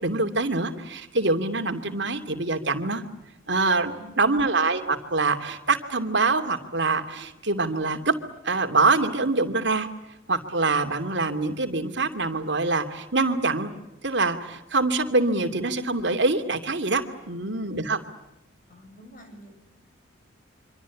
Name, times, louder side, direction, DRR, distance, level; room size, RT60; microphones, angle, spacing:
voice 1, 0.0-3.0 3.5-8.1 8.4-9.9 10.3-13.7 14.0-18.0, right 3 dB, 60° right, 6 dB, 2.7 m, -25 dB
voice 2, 4.0-4.6 17.4-17.9 18.7-19.5, right 1 dB, 40° left, 5 dB, 7.2 m, -47 dB
26.0 x 25.5 x 8.5 m, 0.91 s
head